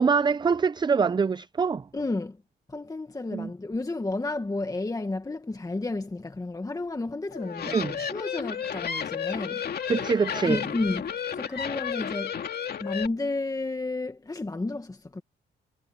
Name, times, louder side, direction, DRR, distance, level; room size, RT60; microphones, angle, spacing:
voice 1, 0.0-1.9 3.3-3.5 7.7-8.0 9.9-10.6, right 5 dB, 20° right, 0.5 m, -24 dB
voice 2, 1.9-2.4 2.7-9.9 10.4-12.4 12.8-15.2, left 2 dB, 20° left, 1.9 m, -32 dB
sound 1, 7.3-13.1, left 8 dB, 55° left, 2.3 m, -32 dB
cardioid pair, 90°, 20 cm